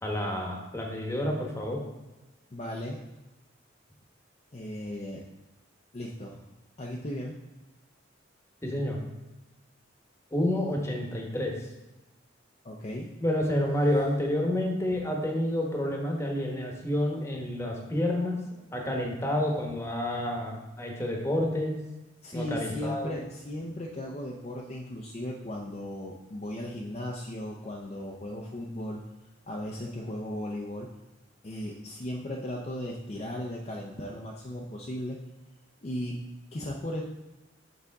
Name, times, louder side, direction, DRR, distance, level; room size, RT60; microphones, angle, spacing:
voice 1, 0.0-1.8 8.6-9.0 10.3-11.5 13.2-18.4 18.7-21.8 22.3-23.2, left 1 dB, 15° left, 0 dB, 1.1 m, -29 dB
voice 2, 2.5-3.0 4.5-5.2 5.9-6.4 6.8-7.4 10.7-10.8 12.6-13.1 22.2-29.0 29.5-30.9 31.4-35.2 35.8-36.2 36.5-37.0, left 1 dB, 35° left, -2 dB, 0.6 m, -36 dB
6.8 x 5.0 x 3.6 m, 1.1 s
head